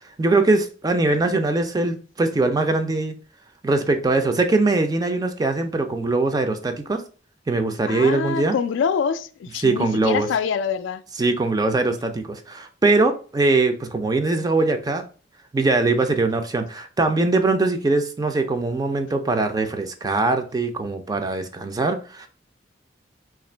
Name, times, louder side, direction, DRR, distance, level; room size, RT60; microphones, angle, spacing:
voice 1, 0.2-3.2 3.6-7.0 7.5-8.5 9.6-10.3 11.2-15.0 15.5-22.3, right 3 dB, 20° right, 0.4 m, -21 dB
voice 2, 7.9-11.0, left 6 dB, 85° left, 0.3 m, -25 dB
2.9 x 2.4 x 4.3 m
head